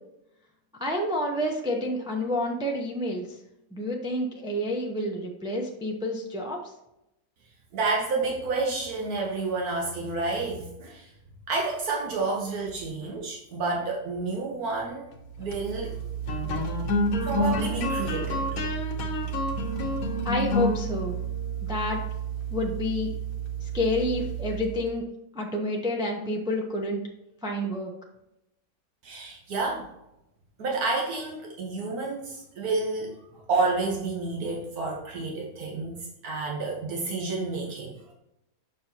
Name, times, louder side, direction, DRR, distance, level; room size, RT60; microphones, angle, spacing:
voice 1, 0.8-3.3 3.7-6.6 20.2-21.2 21.7-22.0 22.5-23.1 23.7-25.1 25.4-27.0 27.4-27.9, left 1 dB, 5° right, 0 dB, 0.6 m, -29 dB
voice 2, 7.7-11.1 11.5-15.1 15.4-16.0 17.2-18.7 29.0-29.9 30.6-38.1, right 3 dB, 85° right, -2 dB, 1.6 m, -30 dB
sound 1, 15.3-24.9, right 1 dB, 75° left, 1.4 m, -29 dB
7.0 x 6.1 x 2.9 m, 0.87 s
omnidirectional pair, 1.5 m